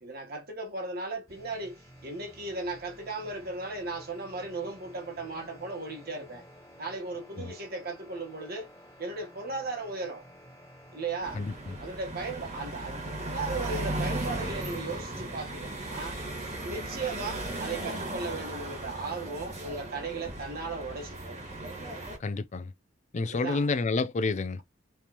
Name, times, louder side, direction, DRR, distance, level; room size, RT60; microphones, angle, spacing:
voice 1, 0.0-6.4 6.8-8.7 9.0-10.2 10.9-11.4 11.8-16.2 16.6-21.4 23.2-23.7, right 3 dB, 55° right, 1.3 m, -36 dB
sound 1, 1.3-12.3, equal, 15° left, 1.8 m, -53 dB
sound 2, 11.2-22.2, right 1 dB, 35° right, 1.5 m, -36 dB
voice 2, 11.3-11.7 22.2-22.7 23.1-24.6, left 3 dB, 40° left, 0.4 m, -29 dB
4.4 x 3.4 x 2.9 m
head